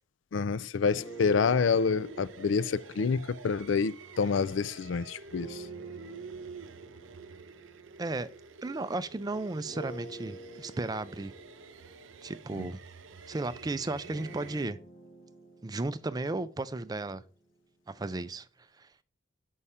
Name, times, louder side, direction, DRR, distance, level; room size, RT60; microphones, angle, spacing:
voice 1, 0.3-5.6 12.6-12.7, left 5 dB, 75° left, 0.4 m, -28 dB
sound 1, 0.9-4.5 5.3-9.1 9.7-17.6, right 1 dB, 35° left, 1.1 m, -51 dB
sound 2, 1.0-14.7, right 5 dB, 90° right, 0.7 m, -48 dB
voice 2, 8.0-8.3 8.6-11.3 12.2-12.8 13.3-14.8 15.6-17.2 17.9-18.5 18.8-18.9, right 2 dB, 20° right, 0.4 m, -34 dB
5.7 x 5.5 x 4.8 m
head